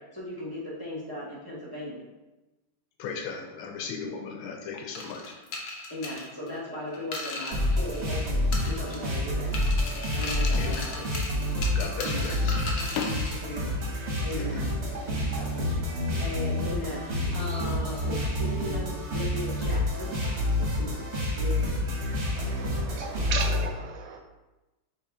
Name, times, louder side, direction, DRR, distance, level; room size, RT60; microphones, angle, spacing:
voice 1, 0.0-2.0 5.9-9.5 10.2-11.0 12.0-12.3 13.4-13.7 14.2-14.7 15.3-20.2 20.5-21.0 21.3-21.6, left 1 dB, 30° right, -8 dB, 0.4 m, -37 dB
voice 2, 3.0-5.3 10.5-10.9 11.7-13.1 14.4-14.6, left 5 dB, 85° left, 1 dB, 1.5 m, -36 dB
sound 1, 4.9-8.2 8.5-9.2 9.5-13.4, left 3 dB, 65° left, 1.0 m, -37 dB
sound 2, 7.5-23.6, left 1 dB, 50° right, 0.8 m, -28 dB
voice 3, 22.4-24.2, right 6 dB, 75° right, 3 dB, 1.3 m, -35 dB
4.3 x 2.7 x 3.5 m, 1.1 s
omnidirectional pair, 2.3 m